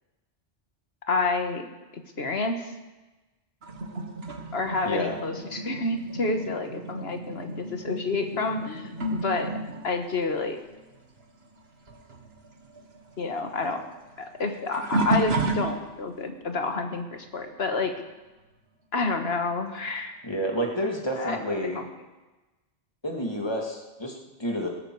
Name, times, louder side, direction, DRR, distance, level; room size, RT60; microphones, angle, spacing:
voice 1, 1.1-1.7 2.2-2.7 4.5-9.6 9.8-10.6 13.2-13.9 14.2-17.9 18.9-20.2 21.2-21.8, left 3 dB, 65° left, 6 dB, 1.7 m, -29 dB
sound 1, 3.6-11.6 11.9-16.2 16.8-17.2 19.4-19.5 20.4-20.5, right 2 dB, 60° right, 1.6 m, -33 dB
voice 2, 4.8-5.2 20.2-21.8 23.0-24.7, equal, 20° left, 0 dB, 2.3 m, -29 dB
17.0 x 14.0 x 4.8 m, 1.1 s
omnidirectional pair, 1.2 m